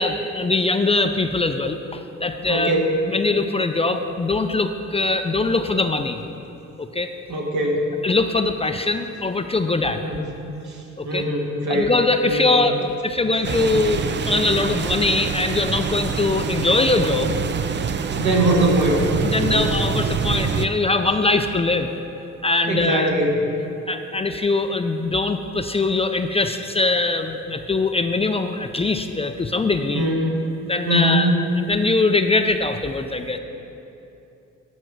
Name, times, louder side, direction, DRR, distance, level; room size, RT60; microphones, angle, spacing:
voice 1, 0.0-2.8 3.1-6.2 6.8-7.1 8.0-10.0 11.0-11.3 11.7-17.4 19.2-22.0 22.4-23.1 23.9-30.0 30.7-33.4, left 3 dB, 20° left, 7 dB, 0.5 m, -22 dB
voice 2, 2.5-3.0 7.3-7.9 10.0-10.2 10.6-11.9 12.2-12.5 18.1-19.0 19.3-19.6 22.7-23.4 29.9-30.3 30.9-31.4, right 1 dB, 70° right, -2 dB, 2.2 m, -21 dB
sound 1, 13.4-20.7, right 6 dB, 35° right, 0.5 m, -25 dB
12.5 x 5.5 x 6.3 m, 2.8 s
cardioid pair, 90°, 30 cm